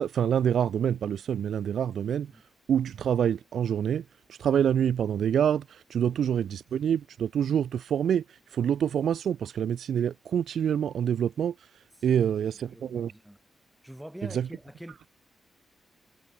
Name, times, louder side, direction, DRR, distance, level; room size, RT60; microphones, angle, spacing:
voice 1, 0.0-2.3 2.7-4.0 4.3-8.2 8.5-11.5 12.0-13.1 14.3-14.5, right 9 dB, 70° right, 2.2 m, -26 dB
voice 2, 12.0-13.4 13.8-15.1, equal, 5° right, 4.4 m, -46 dB
wide cardioid pair, 125°, 0 cm